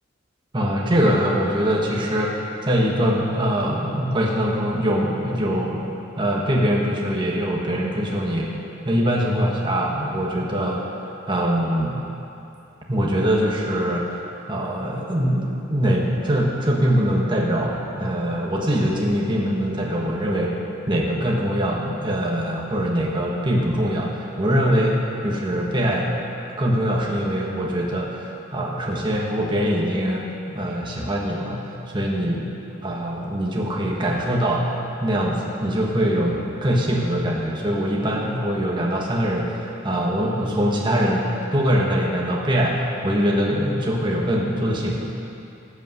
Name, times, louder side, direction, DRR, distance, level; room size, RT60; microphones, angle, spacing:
voice 1, 0.5-5.9 6.2-8.5 8.8-10.8 11.3-12.0 12.9-14.1 14.5-20.6 20.9-26.2 26.6-32.5 32.8-34.7 35.0-45.0, equal, 25° right, -2 dB, 1.3 m, -23 dB
13.0 x 8.5 x 7.8 m, 2.9 s
head